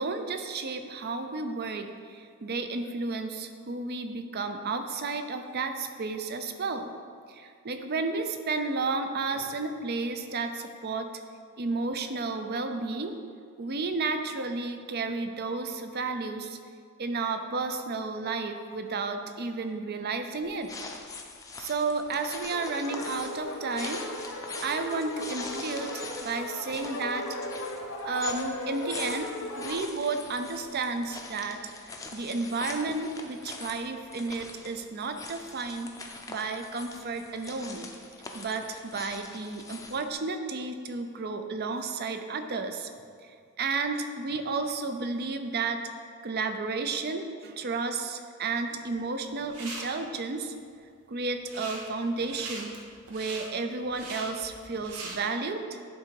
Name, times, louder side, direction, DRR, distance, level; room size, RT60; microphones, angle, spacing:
voice 1, 0.0-6.9 7.3-11.1 11.6-13.2 13.6-16.6 17.0-20.7 21.6-24.0 24.6-27.4 28.0-35.9 36.3-37.9 38.3-42.9 43.3-45.9 46.2-50.5 51.1-52.8 53.1-55.8, right 3 dB, 45° right, 7 dB, 0.5 m, -32 dB
sound 1, 20.4-40.1, left 3 dB, 15° left, 0.5 m, -43 dB
sound 2, 22.5-29.9, left 1 dB, 70° left, 0.9 m, -37 dB
sound 3, 49.2-49.8 51.3-51.8 52.2-55.1, right 3 dB, 85° right, 1.3 m, -41 dB
11.0 x 3.8 x 4.7 m, 2.2 s
head